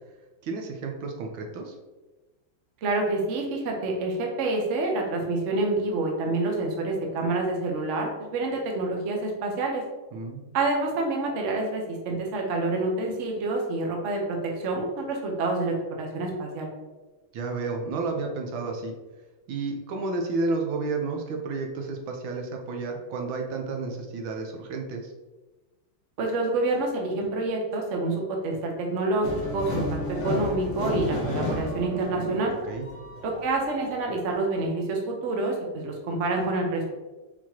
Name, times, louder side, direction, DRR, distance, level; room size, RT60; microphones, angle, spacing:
voice 1, 0.4-1.7 10.1-10.5 17.3-18.9 19.5-25.1 32.2-32.9, right 3 dB, 75° right, 2 dB, 1.4 m, -31 dB
voice 2, 2.8-9.8 10.5-16.7 26.2-29.9 30.2-32.5 33.2-36.8, right 2 dB, 55° right, 1 dB, 0.8 m, -27 dB
sound 1, 29.2-34.3, left 1 dB, 35° left, 1.0 m, -32 dB
4.5 x 4.2 x 2.8 m, 1.2 s
omnidirectional pair, 2.2 m